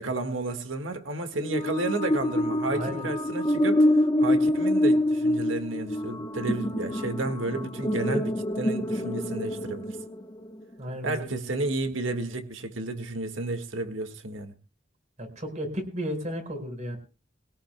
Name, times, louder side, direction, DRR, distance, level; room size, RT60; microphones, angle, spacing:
voice 1, 0.0-10.0 11.0-14.5, right 2 dB, 80° right, 1.7 m, -32 dB
sound 1, 1.4-10.7, left 1 dB, 20° left, 1.0 m, -26 dB
voice 2, 2.7-3.1 10.8-11.2 15.2-17.0, equal, 40° right, 4.7 m, -33 dB
22.0 x 17.0 x 2.2 m
head